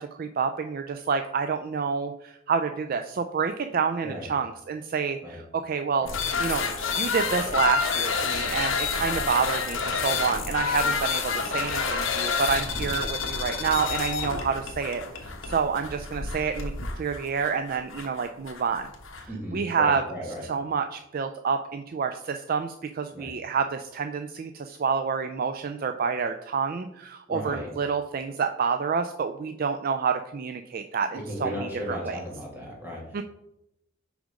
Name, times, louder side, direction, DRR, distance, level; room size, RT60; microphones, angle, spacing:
voice 1, 0.0-6.1 6.4-6.6 6.9-18.9 19.2-20.0 20.5-32.2 33.1-33.2, right 5 dB, 40° right, 7 dB, 0.3 m, -28 dB
sound 1, 6.1-19.3, left 5 dB, 65° left, 1.2 m, -29 dB
voice 2, 19.3-20.5 23.1-23.3 27.3-27.7 31.3-33.2, equal, 10° right, -4 dB, 2.2 m, -35 dB
6.3 x 5.0 x 5.0 m, 0.84 s
head